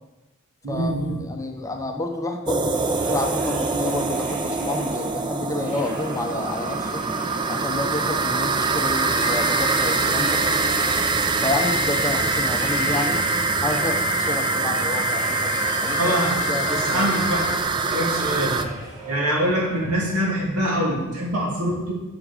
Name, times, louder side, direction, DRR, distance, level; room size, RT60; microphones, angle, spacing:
voice 1, 0.6-1.2 16.0-16.3 16.7-17.4 17.8-18.6 19.1-21.9, equal, 85° right, -3 dB, 2.4 m, -24 dB
voice 2, 1.2-7.0 7.5-10.4 11.4-13.2 13.6-15.6 15.8-16.2 16.5-17.1, left 2 dB, 15° left, 4 dB, 0.6 m, -29 dB
sound 1, 2.5-18.6, right 4 dB, 20° right, 0.4 m, -24 dB
sound 2, 2.7-20.6, right 2 dB, 35° right, 2.0 m, -40 dB
sound 3, 9.0-17.6, left 10 dB, 85° left, 0.4 m, -32 dB
7.6 x 6.0 x 4.9 m, 1.1 s
head